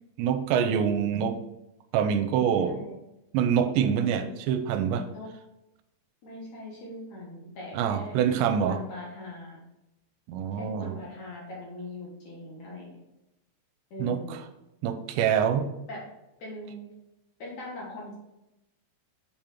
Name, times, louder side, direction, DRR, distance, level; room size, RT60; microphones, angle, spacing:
voice 1, 0.2-1.4 1.9-2.8 3.3-5.1 7.7-8.8 10.3-11.0 14.0-14.4 14.8-15.7, right 8 dB, 85° right, 9 dB, 2.9 m, -25 dB
voice 2, 2.3-3.0 3.8-4.5 5.1-5.3 6.2-8.1 8.5-9.6 10.5-12.9 13.9-14.4 15.9-16.0 16.4-16.8 17.4-18.1, left 1 dB, 55° left, -4 dB, 2.4 m, -41 dB
7.1 x 5.4 x 4.5 m, 0.90 s
omnidirectional pair, 5.1 m